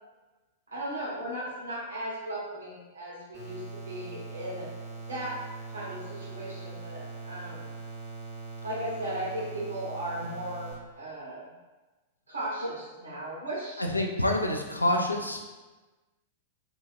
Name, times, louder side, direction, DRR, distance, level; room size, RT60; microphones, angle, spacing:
voice 1, 0.7-4.7 5.1-5.4 5.7-7.7 8.6-10.7 11.0-11.5 12.3-13.8, right 1 dB, 70° right, -6 dB, 1.0 m, -36 dB
sound 1, 3.3-10.7, right 3 dB, 5° right, 0.8 m, -41 dB
voice 2, 13.8-15.5, left 1 dB, 85° left, 2 dB, 0.3 m, -27 dB
2.8 x 2.2 x 2.6 m, 1.2 s
figure-of-eight pair, 100°, 0 cm